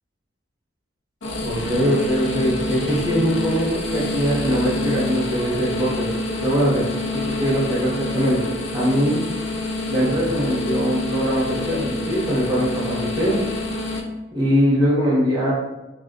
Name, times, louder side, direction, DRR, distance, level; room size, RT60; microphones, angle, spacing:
sound 1, 1.2-14.0, left 2 dB, 80° left, 0.6 m, -27 dB
voice 1, 1.4-6.1 6.4-6.8 7.1-9.2 9.9-13.4 14.3-15.5, equal, 25° right, -7 dB, 1.3 m, -21 dB
4.3 x 3.6 x 2.4 m, 1.1 s
head